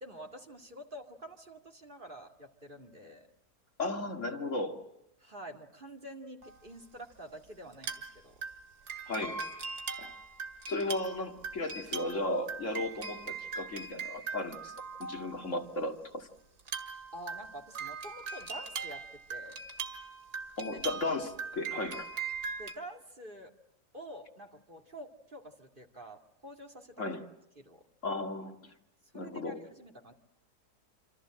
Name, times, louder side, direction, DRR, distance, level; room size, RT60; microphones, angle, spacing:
voice 1, 0.0-3.3 5.2-8.4 17.1-19.6 20.7-20.8 22.6-23.6 23.9-27.0 27.6-27.9 29.1-30.1, equal, 30° right, 2.4 m, -48 dB
voice 2, 3.8-4.8 9.1-9.4 10.0-10.1 10.7-14.7 15.0-16.3 20.6-22.1 27.0-27.3 28.0-28.7 29.1-29.6, left 2 dB, 50° left, 2.3 m, -35 dB
sound 1, 6.4-6.6 7.7-8.1 8.4-15.6 16.6-22.7, right 5 dB, 75° right, 2.6 m, -41 dB
Piano, 9.2-11.0 11.4-11.5 12.6-12.7 13.0-13.3, equal, 85° left, 3.3 m, -46 dB
27.5 x 26.5 x 7.7 m
omnidirectional pair, 1.7 m